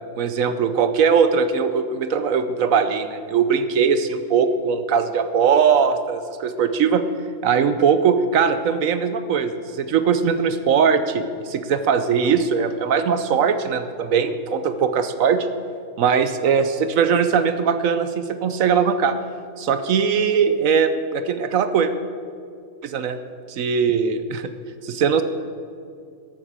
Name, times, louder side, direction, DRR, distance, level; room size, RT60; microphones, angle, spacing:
voice 1, 0.2-7.0 7.4-15.5 16.0-19.2 19.6-21.9 22.8-23.2 23.5-24.5 24.8-25.2, right 6 dB, 80° right, 10 dB, 1.2 m, -20 dB
13.0 x 12.0 x 7.3 m, 2.3 s
omnidirectional pair, 1.4 m